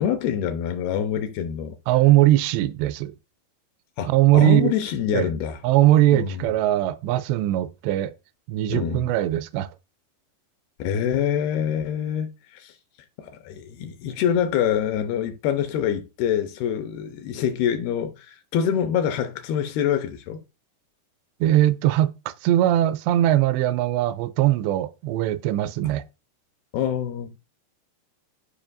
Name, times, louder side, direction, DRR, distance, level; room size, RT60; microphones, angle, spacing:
voice 1, 0.0-1.8 4.0-5.6 6.1-6.4 8.7-9.1 10.8-12.7 13.2-20.4 26.7-27.3, left 9 dB, 80° left, 2.6 m, -25 dB
voice 2, 1.9-3.1 4.0-4.7 5.1-5.3 5.6-8.1 8.5-9.7 21.4-26.0, right 14 dB, 85° right, 2.7 m, -20 dB
12.0 x 5.1 x 2.6 m
omnidirectional pair, 4.9 m